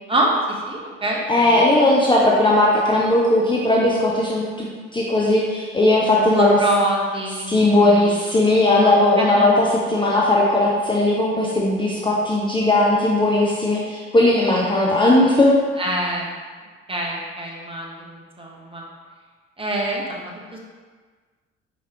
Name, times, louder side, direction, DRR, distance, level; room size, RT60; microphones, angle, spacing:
voice 1, 0.1-1.2 1.5-1.6 6.2-8.1 8.8-9.5 15.8-16.3 16.9-18.8 19.6-20.6, right 1 dB, 15° right, -3 dB, 1.0 m, -25 dB
voice 2, 1.3-4.7 4.9-6.6 7.5-15.5, left 1 dB, 15° left, -5 dB, 0.7 m, -17 dB
4.7 x 3.1 x 3.4 m, 1.5 s
figure-of-eight pair, 50°, 35 cm